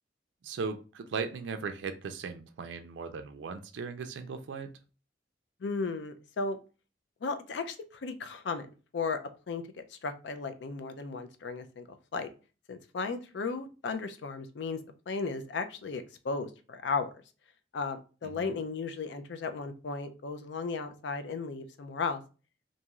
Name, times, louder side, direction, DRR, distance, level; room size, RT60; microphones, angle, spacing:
voice 1, 0.4-4.7 18.2-18.5, right 5 dB, 85° right, 7 dB, 0.4 m, -38 dB
voice 2, 5.6-6.6 7.2-8.7 8.9-9.2 9.5-9.6 9.9-12.3 12.7-14.8 15.1-17.1 17.7-22.2, left 4 dB, 75° left, 9 dB, 0.4 m, -35 dB
2.6 x 2.3 x 3.0 m, 0.34 s
head